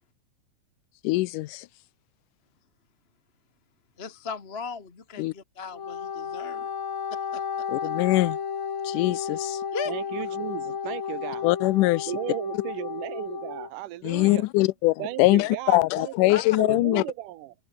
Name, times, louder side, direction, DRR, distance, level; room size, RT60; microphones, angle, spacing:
voice 1, 1.0-1.7 5.2-5.3 7.7-8.4 8.8-9.6 11.4-12.0 14.0-17.0, left 20 dB, 85° left, 2.2 m, -22 dB
voice 2, 4.0-6.7 7.1-7.6 9.7-9.9 16.3-16.4, left 5 dB, 25° left, 1.3 m, -37 dB
Wind instrument woodwind instrument, 5.6-13.7, left 7 dB, 45° left, 2.5 m, -33 dB
voice 3, 9.9-11.4 12.1-14.4 15.0-17.5, right 14 dB, 85° right, 2.7 m, -35 dB
omnidirectional pair, 3.7 m